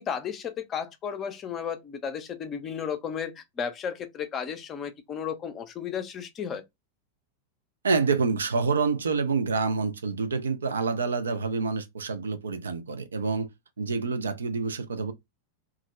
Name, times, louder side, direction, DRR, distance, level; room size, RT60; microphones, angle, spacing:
voice 1, 0.0-6.6, left 7 dB, 30° left, 0.5 m, -34 dB
voice 2, 7.8-13.5 13.8-15.1, right 4 dB, 70° right, 0.3 m, -27 dB
2.3 x 2.0 x 3.0 m
figure-of-eight pair, 90°, 0 cm